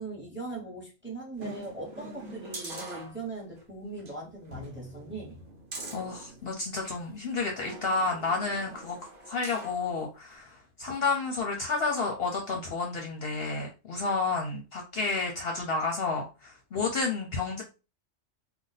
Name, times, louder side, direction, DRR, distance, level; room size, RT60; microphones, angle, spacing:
voice 1, 0.0-5.4, right 3 dB, 10° right, 0.9 m, -40 dB
sound 1, 1.4-3.6 4.0-4.1 4.5-7.0 7.6-9.8 10.3-10.4, right 2 dB, 45° right, 0.9 m, -43 dB
voice 2, 5.9-9.0 9.3-17.6, left 3 dB, 60° left, 0.7 m, -31 dB
2.5 x 2.2 x 4.0 m
omnidirectional pair, 1.4 m